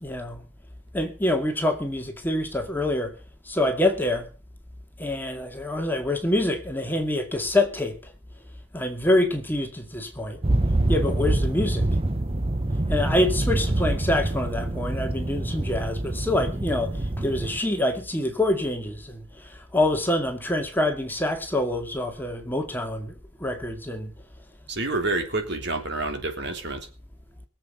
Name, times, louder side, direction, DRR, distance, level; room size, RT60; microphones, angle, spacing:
voice 1, 0.0-0.4 0.9-3.1 3.5-4.3 5.0-8.1 8.7-10.4 10.9-11.8 12.9-23.1 23.4-24.1, left 1 dB, 10° left, 2.0 m, -26 dB
sound 1, 10.4-17.6, right 1 dB, 30° right, 0.9 m, -26 dB
voice 2, 24.7-26.9, right 2 dB, 55° right, 3.3 m, -28 dB
22.5 x 7.7 x 6.6 m
head